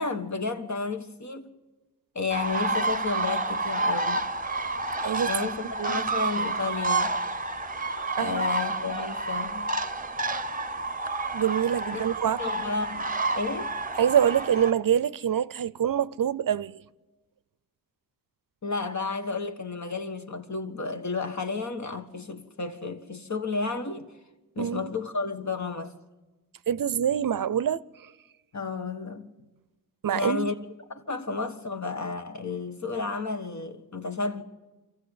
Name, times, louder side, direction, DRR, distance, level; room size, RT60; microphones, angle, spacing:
voice 1, 0.0-1.5 2.1-4.3 5.3-7.1 8.2-9.7 11.9-12.0 12.4-13.7 18.6-24.2 24.5-25.9 28.5-29.3 30.1-30.5 30.9-34.4, left 4 dB, 50° left, 1.5 m, -32 dB
sound 1, 2.3-14.7, right 3 dB, 25° right, 0.8 m, -29 dB
voice 2, 5.0-5.3 5.8-6.0 8.2-8.5 11.3-12.4 14.0-16.8 24.6-24.9 26.7-28.1 30.0-30.5, right 9 dB, 65° right, 0.6 m, -25 dB
24.5 x 14.5 x 8.1 m
cardioid pair, 65°, 36 cm